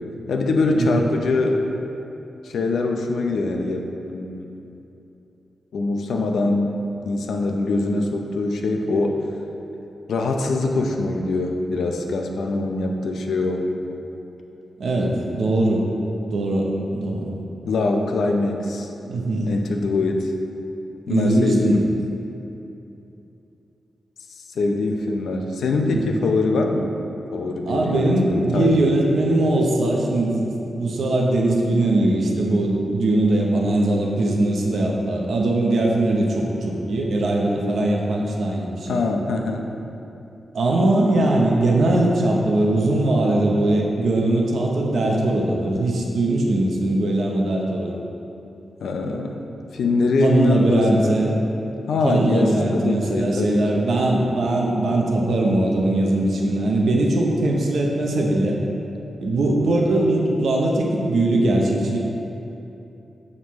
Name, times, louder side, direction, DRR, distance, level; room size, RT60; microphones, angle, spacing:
voice 1, 0.3-1.6 2.4-4.5 5.7-9.2 10.1-13.7 17.6-18.9 19.5-20.3 21.1-21.9 24.3-26.9 27.3-28.9 38.9-39.7 48.8-49.5 49.7-51.2 51.9-53.9 59.4-59.7, left 2 dB, 85° left, 3 dB, 0.6 m, -23 dB
voice 2, 14.8-15.9 16.3-17.3 19.0-19.5 21.1-21.9 25.9-26.0 27.7-30.4 30.7-39.0 40.5-47.9 50.2-51.3 52.0-58.6 59.2-62.0, right 2 dB, 65° right, -1 dB, 0.8 m, -20 dB
7.3 x 6.4 x 3.1 m, 2.9 s
wide cardioid pair, 175°, 0 cm